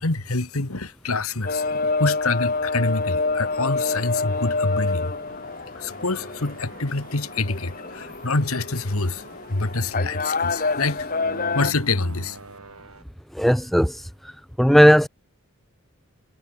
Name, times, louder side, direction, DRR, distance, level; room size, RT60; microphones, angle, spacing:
voice 1, 0.0-5.1 5.8-9.2 9.5-11.1 11.5-12.4, left 3 dB, 75° left, 1.9 m, -26 dB
sound 1, 1.3-13.0, right 2 dB, 80° right, 6.1 m, -46 dB
sound 2, 1.5-11.7, left 3 dB, 40° left, 1.7 m, -27 dB
voice 2, 13.3-14.0 14.6-15.1, equal, ahead, 0.6 m, -16 dB
head